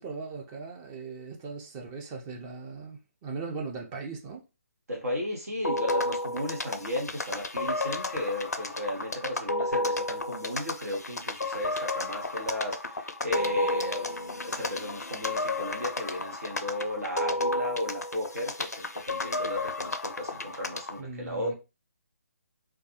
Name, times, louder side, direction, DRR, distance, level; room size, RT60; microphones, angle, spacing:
voice 1, 0.0-4.4 20.9-21.5, right 4 dB, 20° right, 0.6 m, -39 dB
voice 2, 4.9-21.5, left 1 dB, 70° right, 0.9 m, -35 dB
sound 1, 5.6-21.0, left 2 dB, 85° left, 0.4 m, -32 dB
2.3 x 2.2 x 2.8 m
figure-of-eight pair, 145°, 8 cm